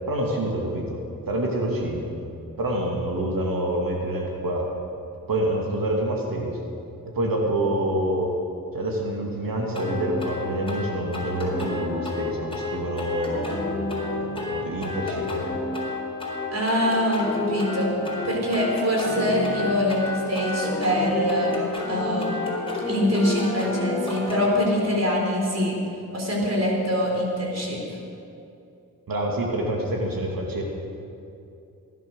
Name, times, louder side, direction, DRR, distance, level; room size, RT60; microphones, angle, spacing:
voice 1, 0.1-1.0 1.3-2.1 2.6-4.7 5.3-6.6 7.1-8.3 8.7-13.6 14.1-15.4 29.1-30.6, right 1 dB, 75° right, 0 dB, 2.4 m, -27 dB
sound 1, 9.7-24.5, left 2 dB, 15° left, 4.3 m, -29 dB
voice 2, 16.5-17.9 18.2-21.6 21.9-22.3 22.9-25.8 26.1-27.8, left 1 dB, 45° right, -1 dB, 4.0 m, -24 dB
18.0 x 11.0 x 6.4 m, 2.7 s
cardioid pair, 80°, 35 cm